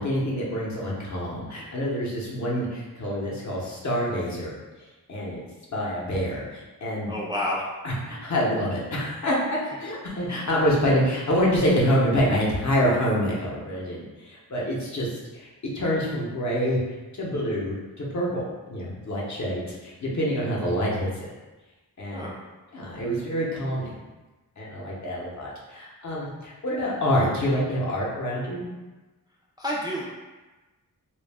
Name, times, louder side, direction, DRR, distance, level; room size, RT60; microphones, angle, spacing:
voice 1, 0.0-4.5 5.1-5.4 5.7-7.1 7.8-15.5 15.7-16.8 17.1-21.1 22.0-22.3 22.7-24.0 24.6-28.8, equal, 50° left, -5 dB, 0.7 m, -26 dB
voice 2, 7.1-7.6 22.1-22.3 29.6-30.0, left 1 dB, 10° right, -5 dB, 0.3 m, -29 dB
2.3 x 2.0 x 3.3 m, 1.2 s
wide cardioid pair, 95°, 37 cm